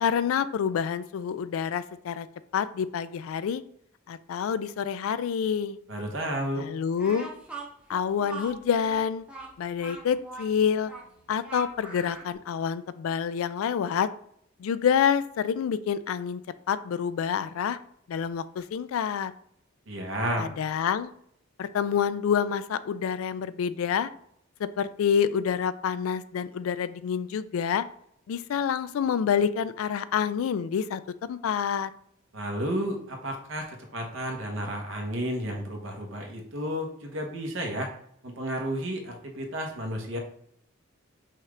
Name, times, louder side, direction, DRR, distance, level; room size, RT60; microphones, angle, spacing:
voice 1, 0.0-2.3 2.5-3.6 4.1-5.8 6.6-7.3 7.9-9.2 9.6-10.9 11.3-14.1 14.6-16.4 16.7-17.8 18.1-19.3 20.4-21.1 21.6-24.1 24.6-27.8 28.3-31.9, left 7 dB, 85° left, 14 dB, 0.3 m, -27 dB
voice 2, 5.9-6.7 19.9-20.5 32.3-37.9 38.2-40.2, equal, 70° right, 2 dB, 1.1 m, -32 dB
Speech, 7.0-12.3, right 3 dB, 5° right, 0.7 m, -42 dB
5.6 x 2.4 x 3.2 m, 0.68 s
head